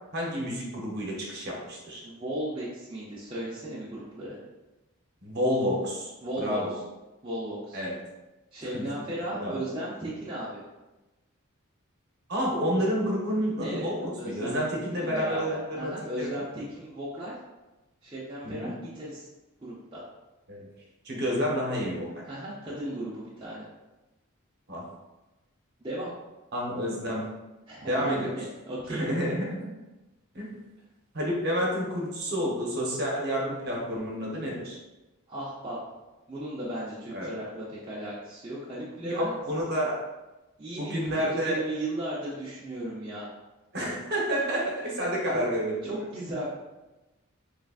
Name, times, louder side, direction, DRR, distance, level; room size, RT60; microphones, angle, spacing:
voice 1, 0.1-2.0 5.2-6.1 6.4-6.7 7.7-7.9 8.7-8.8 9.4-9.7 12.3-16.3 18.4-18.7 20.5-20.7 21.0-22.2 24.7-24.8 26.5-27.3 27.9-28.4 28.9-29.7 30.3-30.5 31.1-34.8 37.1-37.3 39.0-40.0 40.8-41.6 43.7-45.9, equal, 50° right, -3 dB, 0.9 m, -29 dB
voice 2, 2.0-4.4 6.2-6.6 7.2-7.8 8.5-10.6 13.6-13.8 14.2-17.3 18.0-19.3 19.6-20.0 22.2-23.7 25.8-26.1 27.7-28.1 28.7-29.0 35.3-35.8 36.3-39.3 40.6-43.3 45.3-45.4 45.8-46.5, right 1 dB, 20° right, -8 dB, 0.6 m, -36 dB
3.8 x 3.2 x 2.4 m, 1.0 s
head